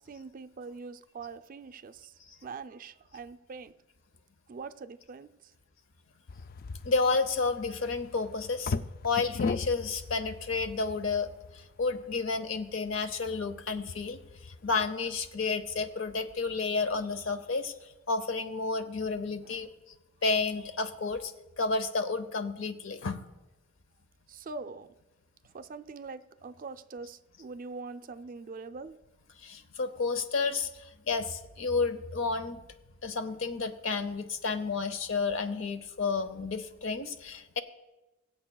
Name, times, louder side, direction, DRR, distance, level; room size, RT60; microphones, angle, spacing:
voice 1, 0.0-3.7 4.5-5.5 19.4-19.6 24.3-24.9 25.5-29.0, right 4 dB, 45° right, 0.4 m, -43 dB
sound 1, 6.3-14.9, left 4 dB, 45° left, 0.3 m, -39 dB
voice 2, 6.8-8.7 9.0-17.7 18.1-19.7 20.2-23.2 29.4-32.6 33.0-37.6, left 4 dB, 70° left, 0.8 m, -31 dB
22.0 x 7.9 x 2.3 m
head